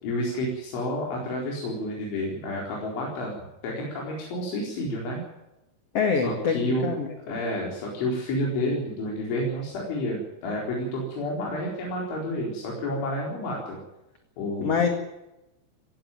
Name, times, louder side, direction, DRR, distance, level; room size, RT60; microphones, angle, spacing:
voice 1, 0.0-5.2 6.2-6.9 7.3-13.8 14.4-14.9, left 1 dB, 90° left, -2 dB, 6.7 m, -30 dB
voice 2, 5.9-7.3 14.6-14.9, left 6 dB, 45° left, 5 dB, 2.3 m, -25 dB
17.5 x 17.0 x 9.1 m, 0.93 s
omnidirectional pair, 5.3 m